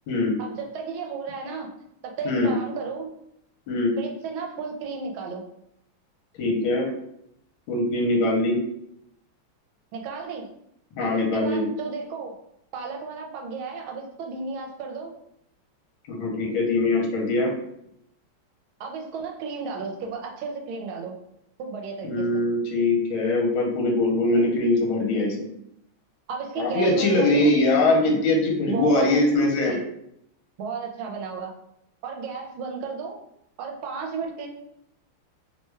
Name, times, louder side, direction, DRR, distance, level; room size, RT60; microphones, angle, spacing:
voice 1, 0.4-1.7 2.0-3.1 4.0-5.4 9.9-10.5 11.0-12.3 12.7-15.1 18.8-21.2 21.6-22.4 26.3-27.5 28.7-29.2 29.7-29.8 30.6-31.5 32.0-33.2 33.6-34.5, right 4 dB, 80° right, 1 dB, 1.3 m, -33 dB
voice 2, 6.4-6.9 7.7-8.6 11.0-11.6 16.1-17.5 22.0-25.5 26.6-29.8, left 2 dB, 75° left, 0 dB, 1.4 m, -22 dB
3.3 x 2.2 x 3.1 m, 0.77 s
omnidirectional pair, 2.3 m